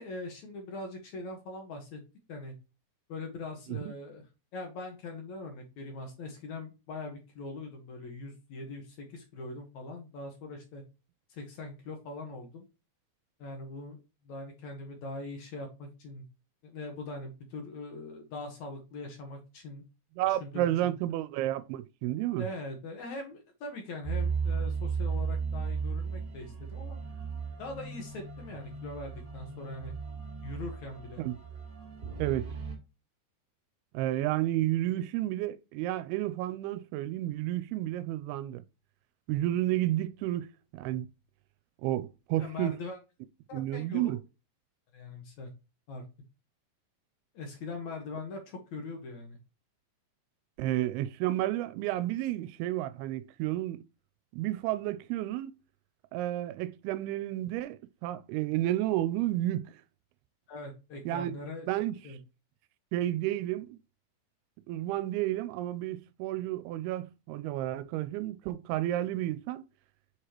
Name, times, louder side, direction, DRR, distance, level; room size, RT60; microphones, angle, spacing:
voice 1, 0.0-2.0 2.3-2.5 3.1-10.8 11.3-12.7 13.4-14.0 14.2-16.3 16.6-19.8 20.3-20.9 22.4-27.0 27.6-29.9 30.4-31.2 42.4-43.0 43.5-44.1 44.9-45.5 45.9-46.0 47.3-49.4 60.5-61.7 62.0-62.2, left 2 dB, 60° left, 2.1 m, -41 dB
voice 2, 20.2-22.5 31.2-31.4 32.2-32.5 33.9-38.6 39.3-41.1 41.8-42.8 43.5-44.2 50.6-53.8 54.3-55.6 56.1-59.8 61.1-61.4 61.7-62.0 62.9-63.8 64.7-69.6, right 14 dB, 90° right, 2.5 m, -31 dB
sound 1, 24.0-32.8, right 5 dB, 35° right, 1.7 m, -35 dB
6.7 x 4.8 x 2.9 m
omnidirectional pair, 4.4 m